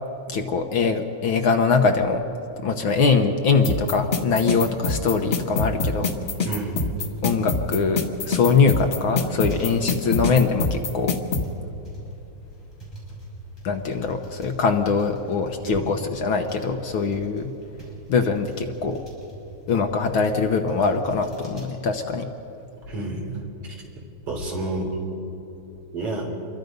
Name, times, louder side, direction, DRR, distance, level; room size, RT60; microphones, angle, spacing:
voice 1, 0.3-2.2 2.6-6.1 7.2-11.2 13.6-17.5 18.1-19.0 19.7-22.3, left 5 dB, 60° left, 4 dB, 1.4 m, -22 dB
sound 1, 3.6-11.4, left 4 dB, 80° left, 0.5 m, -24 dB
sound 2, 4.4-21.8, right 1 dB, 5° left, 6.3 m, -43 dB
voice 2, 6.5-6.8 15.6-15.9 22.9-23.4 24.3-25.2 25.9-26.3, right 2 dB, 50° right, 0 dB, 4.3 m, -29 dB
27.0 x 22.5 x 5.3 m, 2.9 s
omnidirectional pair, 3.3 m